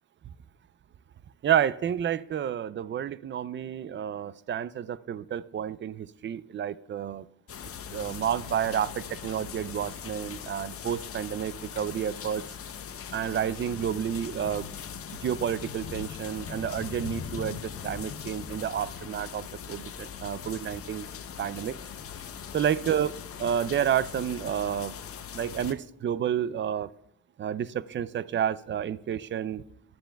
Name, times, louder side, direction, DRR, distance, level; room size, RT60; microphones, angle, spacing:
voice 1, 1.4-7.2 7.9-12.4 13.1-14.7 15.2-17.6 17.8-21.1 21.4-21.8 22.5-24.9 25.3-26.9 27.4-29.6, right 9 dB, 40° right, 18 dB, 0.4 m, -30 dB
sound 1, 7.5-25.7, left 8 dB, 50° left, 0.7 m, -40 dB
22.5 x 7.8 x 2.3 m, 0.75 s
cardioid pair, 90°, 30 cm